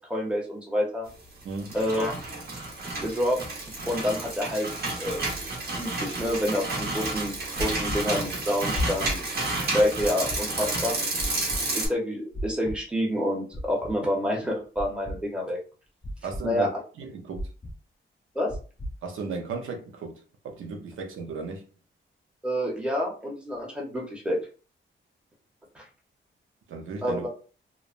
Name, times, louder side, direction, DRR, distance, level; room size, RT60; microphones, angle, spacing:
voice 1, 0.1-1.1 1.7-2.1 3.0-3.4 3.9-4.7 5.0-5.3 5.8-9.2 9.6-11.0 11.7-15.6 16.4-16.7 18.3-18.5 22.4-24.4 25.7-25.8 27.0-27.3, left 1 dB, 5° right, 0.7 m, -28 dB
sound 1, 1.4-11.9, right 2 dB, 50° right, 1.0 m, -31 dB
voice 2, 1.4-1.7 16.2-16.7 17.0-17.5 19.0-20.2 20.4-21.6 26.7-27.3, right 4 dB, 85° right, 0.6 m, -35 dB
sound 2, 7.6-8.0 8.7-9.2 10.0-10.4 11.2-11.6 12.3-12.8 13.5-13.9 14.8-15.2 16.0-16.4 17.3-17.7 18.5-18.9, left 1 dB, 15° left, 0.4 m, -32 dB
3.1 x 2.0 x 2.4 m
wide cardioid pair, 170°, 20 cm